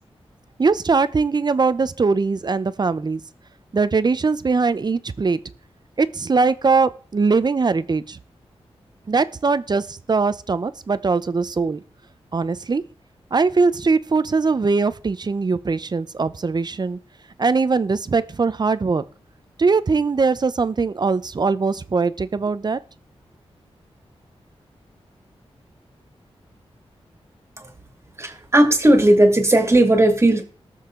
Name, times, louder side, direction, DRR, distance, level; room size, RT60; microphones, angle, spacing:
voice 1, 0.6-3.2 3.7-5.4 6.0-8.2 9.1-11.8 12.3-12.8 13.3-17.0 17.4-19.0 19.6-22.8, right 4 dB, 40° right, 15 dB, 0.7 m, -21 dB
voice 2, 28.2-30.4, right 1 dB, 25° right, 5 dB, 2.3 m, -16 dB
19.0 x 6.5 x 3.8 m, 0.39 s
wide cardioid pair, 105°, 11 cm